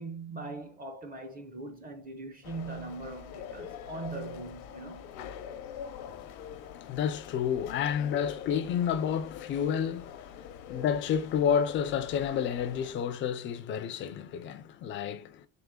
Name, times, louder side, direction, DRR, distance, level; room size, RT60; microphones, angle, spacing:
voice 1, 0.0-5.1, right 3 dB, 20° right, 0.5 m, -41 dB
sound 1, 2.4-12.9, left 8 dB, 80° left, 0.8 m, -44 dB
voice 2, 6.1-15.5, left 8 dB, 30° left, 0.3 m, -30 dB
3.6 x 3.4 x 3.6 m
cardioid pair, 140°, 45 cm